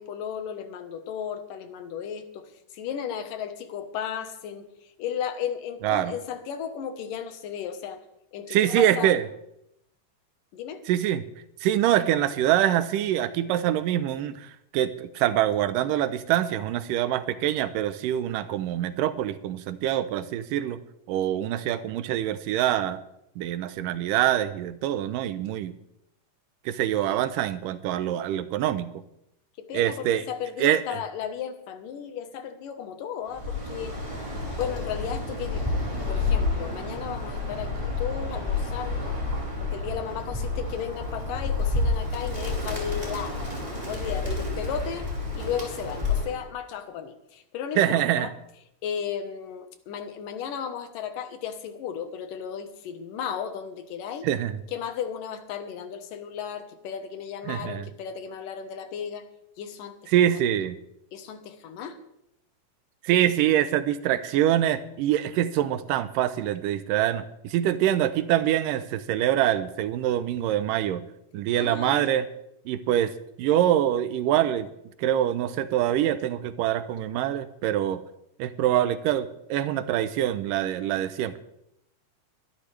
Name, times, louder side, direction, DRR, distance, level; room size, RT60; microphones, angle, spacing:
voice 1, 0.0-8.0 8.3-9.1 10.5-10.8 27.0-27.2 29.6-34.0 34.5-35.7 36.1-39.2 39.6-43.4 43.9-48.3 48.8-54.3 54.7-59.3 59.6-60.1 61.1-62.0 71.6-72.1, left 8 dB, 85° left, 8 dB, 2.8 m, -35 dB
voice 2, 8.5-9.2 10.9-11.2 11.6-14.5 14.7-20.8 21.1-23.0 23.4-25.7 26.7-28.9 29.7-30.2 30.6-30.8 47.8-48.3 54.2-54.6 57.5-57.9 60.1-60.8 63.0-71.0 71.3-72.3 72.7-73.1 73.4-74.7 75.0-78.0 78.4-81.4, right 11 dB, 90° right, 13 dB, 2.4 m, -25 dB
Bird, 33.3-46.4, left 3 dB, 10° right, 3.9 m, -29 dB
22.0 x 11.5 x 3.3 m, 0.80 s
omnidirectional pair, 3.7 m